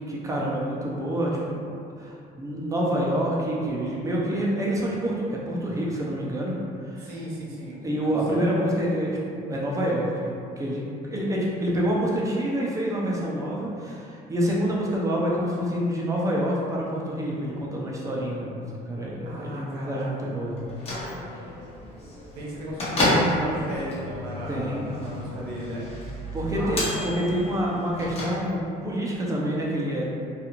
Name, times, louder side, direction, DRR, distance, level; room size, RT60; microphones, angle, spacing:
voice 1, 0.1-1.7 2.0-6.6 6.8-7.1 7.8-10.3 10.6-20.6 24.5-24.9 26.3-30.1, equal, 20° right, -4 dB, 0.5 m, -27 dB
voice 2, 7.0-7.8 8.3-8.5 19.2-20.3 22.4-25.9 26.5-27.2, right 1 dB, 70° right, -4 dB, 0.7 m, -35 dB
Bell / Microwave oven, 20.6-28.9, left 1 dB, 35° left, 0.8 m, -30 dB
2.4 x 2.4 x 2.9 m, 2.4 s
cardioid pair, 110°, 17 cm